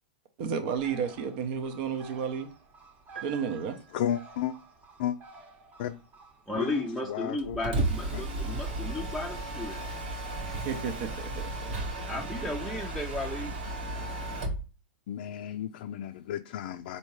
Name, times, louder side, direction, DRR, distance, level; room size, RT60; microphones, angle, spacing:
voice 1, 0.4-2.5 3.2-3.8 10.4-11.5, right 6 dB, 55° right, 0.7 m, -32 dB
Bird, 0.8-8.2, right 3 dB, 30° right, 0.9 m, -53 dB
sound 1, 3.2-4.5, right 9 dB, 90° right, 0.6 m, -47 dB
voice 2, 3.9-4.5 5.0-5.2 5.8-6.0 6.5-7.6 8.1-8.3 15.1-17.0, left 11 dB, 65° left, 0.3 m, -33 dB
voice 3, 6.5-9.8 12.1-13.6, left 2 dB, ahead, 0.5 m, -34 dB
Mechanisms, 7.4-14.7, right 2 dB, 70° right, 1.6 m, -34 dB
4.3 x 2.8 x 3.0 m
hypercardioid pair, 125°, 6 cm